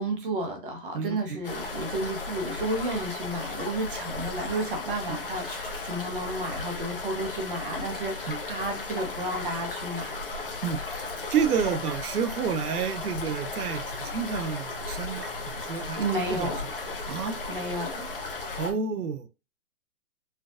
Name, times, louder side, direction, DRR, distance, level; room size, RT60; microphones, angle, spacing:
voice 1, 0.0-10.1 16.0-16.6 17.1-17.2 17.5-18.1, right 2 dB, 35° right, 0.9 m, -32 dB
voice 2, 0.9-1.4 5.1-5.2 8.3-8.4 10.6-16.0 16.3-16.5 17.1-17.4 18.6-19.3, right 6 dB, 85° right, 0.7 m, -30 dB
sound 1, 1.4-18.7, left 3 dB, 40° left, 0.6 m, -35 dB
sound 2, 5.2-6.6 8.3-8.4, left 1 dB, 5° right, 1.1 m, -51 dB
4.3 x 2.6 x 2.4 m
hypercardioid pair, 175°, 44 cm